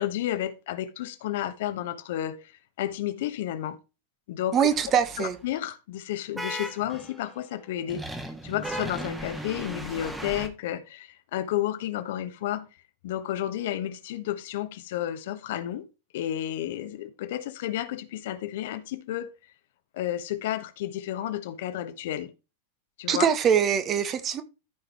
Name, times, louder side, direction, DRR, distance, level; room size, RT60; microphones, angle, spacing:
voice 1, 0.0-3.8 4.3-4.6 5.2-8.0 8.4-12.7 13.0-15.9 16.1-19.3 19.9-22.3 23.0-23.3, left 12 dB, 55° left, 1.2 m, -31 dB
voice 2, 4.5-5.4 23.1-24.4, right 8 dB, 30° right, 1.5 m, -23 dB
sound 1, 4.7-5.4 6.4-7.3 7.9-10.5, right 1 dB, 5° right, 1.8 m, -37 dB
14.0 x 5.3 x 3.1 m
figure-of-eight pair, 90°, 0 cm